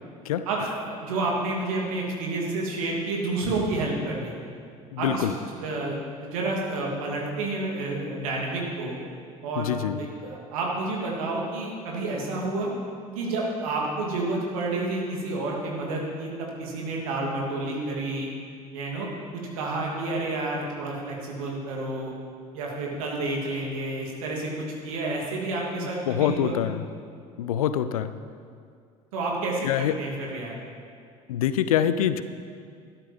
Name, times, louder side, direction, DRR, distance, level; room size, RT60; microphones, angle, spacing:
voice 1, 0.5-4.3 5.0-5.2 5.6-9.0 9.4-9.7 10.0-12.7 13.1-18.3 18.7-19.1 19.3-22.1 22.5-26.6 29.1-30.5, right 2 dB, 70° right, -2 dB, 2.8 m, -30 dB
voice 2, 4.9-5.3 9.6-10.0 25.8-26.8 27.4-28.1 29.6-30.0 31.3-32.2, left 10 dB, 75° left, 12 dB, 0.6 m, -25 dB
12.5 x 12.0 x 5.3 m, 2.2 s
figure-of-eight pair, 60°, 18 cm